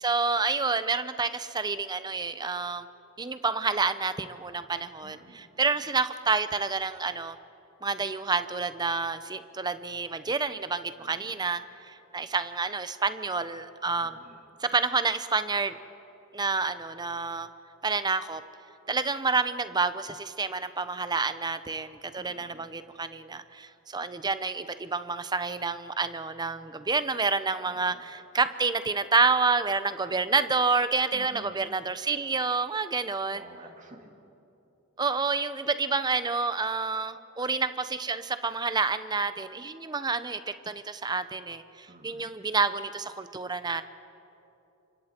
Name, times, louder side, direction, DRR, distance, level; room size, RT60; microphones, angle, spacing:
voice 1, 0.0-2.9 3.2-7.4 7.8-11.6 12.1-14.2 14.6-15.8 16.3-17.5 17.8-18.4 18.9-33.4 35.0-40.4 40.7-43.8, right 4 dB, 20° right, 12 dB, 0.7 m, -28 dB
voice 2, 5.0-5.4 11.0-11.4 14.0-14.4 22.2-22.7 27.7-28.0 30.3-30.4 31.1-31.6 33.3-34.1 41.9-42.3, right 1 dB, 35° right, 3 dB, 2.1 m, -50 dB
29.0 x 25.5 x 4.4 m, 2.8 s
head